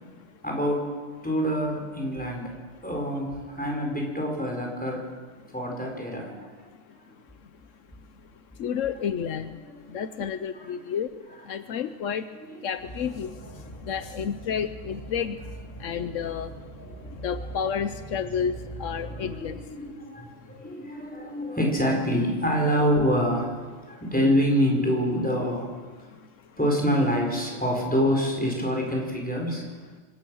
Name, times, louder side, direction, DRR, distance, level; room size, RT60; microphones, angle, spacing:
voice 1, 0.4-0.9 1.2-2.5 2.8-5.0 5.5-6.5 9.1-9.3 9.5-10.1 10.6-10.8 12.4-12.6 15.8-16.0 17.0-17.1 19.0-25.7 26.6-29.6, equal, 5° left, 0 dB, 4.7 m, -26 dB
voice 2, 8.5-9.6 9.9-12.2 12.6-15.5 15.8-19.7 20.4-20.5 23.9-24.0 26.1-26.3, left 7 dB, 80° left, 11 dB, 1.1 m, -31 dB
sound 1, 12.8-19.6, right 1 dB, 40° left, 6.0 m, -41 dB
25.5 x 17.0 x 6.4 m, 1.5 s
omnidirectional pair, 1.3 m